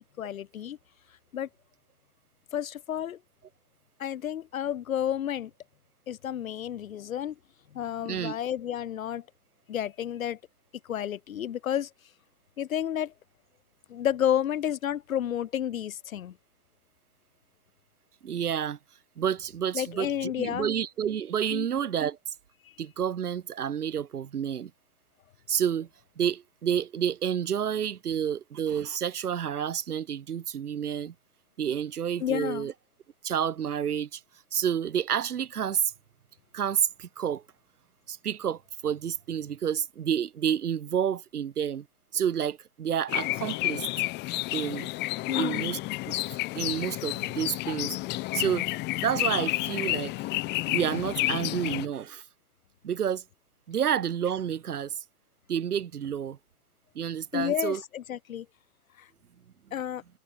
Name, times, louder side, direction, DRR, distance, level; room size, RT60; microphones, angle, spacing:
voice 1, 0.2-0.8 1.3-1.5 2.5-3.2 4.0-5.5 6.1-7.4 7.7-9.2 9.7-10.4 10.9-11.9 12.6-13.1 13.9-16.4 19.7-20.7 21.5-21.7 32.2-32.7 45.3-45.7 57.3-58.5 59.0-59.1 59.7-60.0, left 10 dB, 60° left, 7.0 m, -31 dB
voice 2, 8.0-8.4 18.2-18.8 19.2-22.2 22.8-24.7 25.5-25.9 26.2-31.1 31.6-32.7 33.2-34.2 34.5-35.9 36.5-37.4 38.1-41.9 42.1-43.9 44.5-44.9 45.4-45.8 46.1-46.2 46.5-48.0 48.3-48.7 49.0-50.1 50.7-52.2 52.8-53.2 53.7-55.0 55.5-56.4 56.9-57.8, right 8 dB, 80° right, 2.7 m, -29 dB
sound 1, 43.1-51.9, left 21 dB, 20° left, 2.2 m, -30 dB
hypercardioid pair, 150°, 45 cm